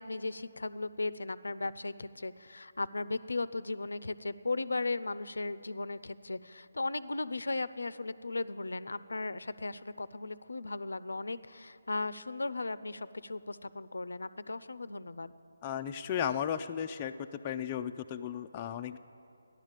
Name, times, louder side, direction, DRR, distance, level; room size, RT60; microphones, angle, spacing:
voice 1, 0.0-15.3, left 3 dB, 85° left, 16 dB, 0.5 m, -36 dB
voice 2, 15.6-17.1 17.4-19.0, left 9 dB, 25° left, 6 dB, 0.4 m, -35 dB
14.0 x 11.0 x 7.4 m, 2.6 s
figure-of-eight pair, 160°, 0 cm